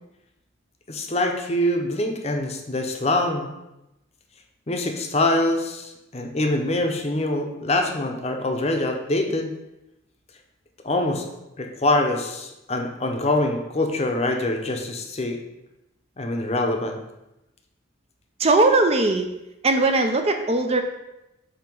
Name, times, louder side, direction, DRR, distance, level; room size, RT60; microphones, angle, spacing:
voice 1, 0.9-3.5 4.7-9.5 10.8-11.3 11.6-15.4 16.2-17.0, left 1 dB, 30° left, 3 dB, 0.7 m, -24 dB
voice 2, 18.4-19.3 19.6-20.8, right 2 dB, 30° right, 5 dB, 0.5 m, -19 dB
7.5 x 2.9 x 5.4 m, 0.93 s
head